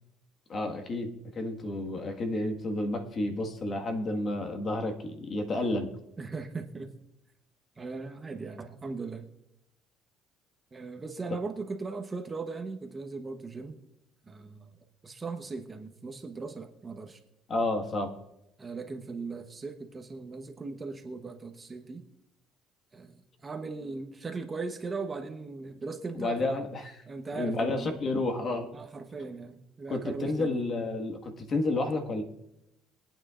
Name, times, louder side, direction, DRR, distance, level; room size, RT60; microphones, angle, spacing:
voice 1, 0.5-5.9 17.5-18.1 26.1-27.0 27.3-28.7 29.9-32.2, left 2 dB, 40° left, 4 dB, 1.7 m, -31 dB
voice 2, 6.2-6.9 7.8-9.3 10.7-13.8 14.3-14.7 15.0-17.2 18.6-22.0 22.9-26.6 27.1-28.0 28.7-30.6, right 4 dB, 25° right, 4 dB, 1.0 m, -38 dB
23.0 x 9.0 x 2.5 m, 0.87 s
cardioid pair, 110°, 0 cm